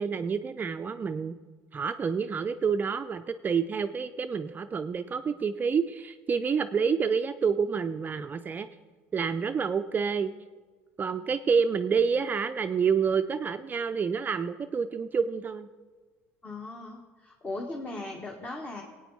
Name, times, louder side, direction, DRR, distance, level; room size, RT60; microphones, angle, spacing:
voice 1, 0.0-1.3 1.7-8.7 9.1-10.3 11.0-15.7, right 6 dB, 30° right, 8 dB, 0.4 m, -28 dB
voice 2, 16.4-18.8, left 2 dB, 25° left, 0 dB, 1.5 m, -38 dB
18.5 x 8.9 x 4.1 m, 1.4 s
supercardioid pair, 95°, 6 cm